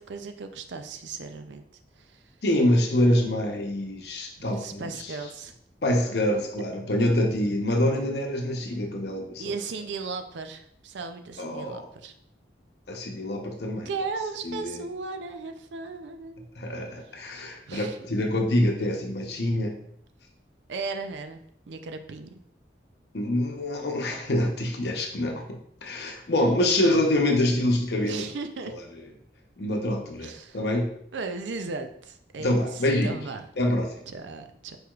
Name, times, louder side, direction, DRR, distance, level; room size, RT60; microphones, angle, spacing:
voice 1, 0.0-1.6 2.0-2.2 4.4-5.5 9.4-12.1 13.9-16.6 17.7-18.0 20.7-21.4 21.7-22.4 28.0-28.7 30.2-30.6 31.1-33.5 34.1-34.8, right 4 dB, 80° right, 7 dB, 0.5 m, -36 dB
voice 2, 2.4-5.1 5.8-9.4 11.4-11.9 12.9-13.9 14.4-14.8 16.6-19.7 23.1-25.4 25.8-28.2 28.7-28.8 29.6-30.9 32.4-33.2 33.6-34.0, left 1 dB, 65° left, 2 dB, 0.8 m, -25 dB
4.7 x 4.7 x 2.4 m, 0.68 s
head